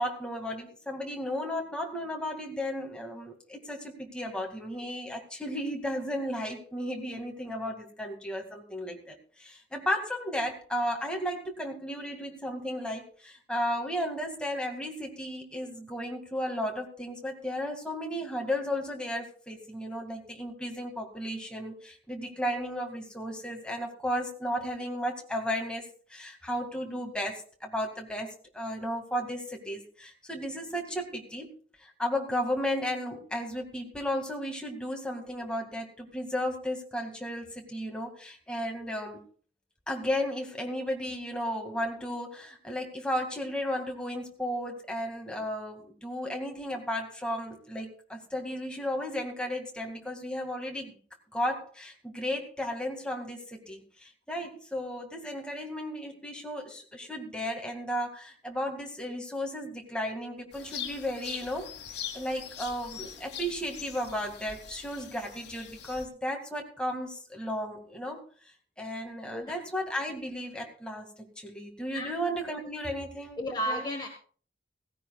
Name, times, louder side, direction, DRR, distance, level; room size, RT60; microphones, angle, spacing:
voice 1, 0.0-31.5 31.8-39.2 39.9-50.9 51.3-61.7 62.1-68.2 68.8-73.4 73.7-73.8, equal, 5° left, 1 dB, 2.2 m, -34 dB
sound 1, 60.5-66.1, left 8 dB, 65° left, 1.7 m, -42 dB
voice 2, 69.3-69.6 71.9-72.1 73.4-74.1, equal, 25° left, 2 dB, 1.5 m, -33 dB
16.5 x 16.0 x 2.4 m, 0.41 s
head